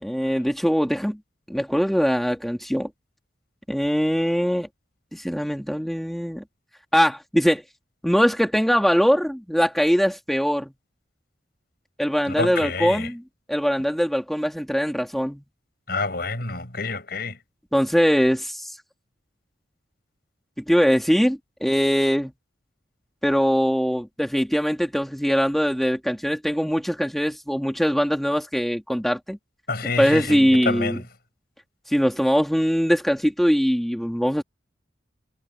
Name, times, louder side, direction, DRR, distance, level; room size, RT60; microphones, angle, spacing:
voice 1, 0.0-1.2 1.5-2.9 3.7-4.7 5.1-6.4 6.9-7.6 8.0-10.7 12.0-13.2 13.5-15.4 17.7-18.8 20.6-22.3 23.2-29.4 30.0-31.0 31.9-34.4, equal, ahead, 2.0 m, -22 dB
voice 2, 12.3-13.1 15.9-17.4 29.7-31.0, left 3 dB, 55° left, 6.0 m, -28 dB
head